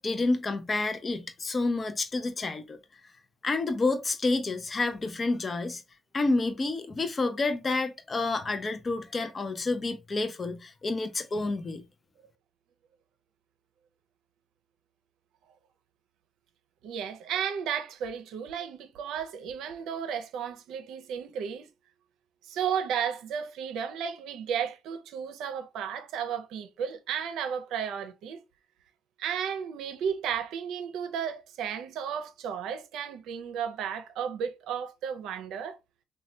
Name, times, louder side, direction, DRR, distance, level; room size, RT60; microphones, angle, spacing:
voice 1, 0.0-2.8 3.4-5.8 6.1-11.8, left 3 dB, 35° left, 0.4 m, -29 dB
voice 2, 16.8-21.7 22.5-28.4 29.2-35.8, right 8 dB, 85° right, 0.5 m, -33 dB
3.1 x 2.2 x 2.7 m
cardioid pair, 90°, 0 cm